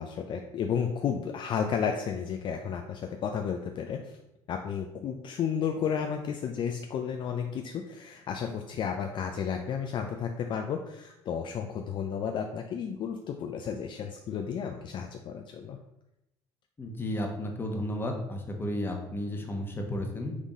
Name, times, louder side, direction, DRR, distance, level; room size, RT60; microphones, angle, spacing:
voice 1, 0.0-4.2 4.5-15.8, left 7 dB, 50° left, 4 dB, 0.4 m, -32 dB
voice 2, 16.8-20.3, left 1 dB, 20° left, 2 dB, 1.0 m, -33 dB
3.7 x 3.6 x 4.0 m, 0.88 s
supercardioid pair, 85°, 11 cm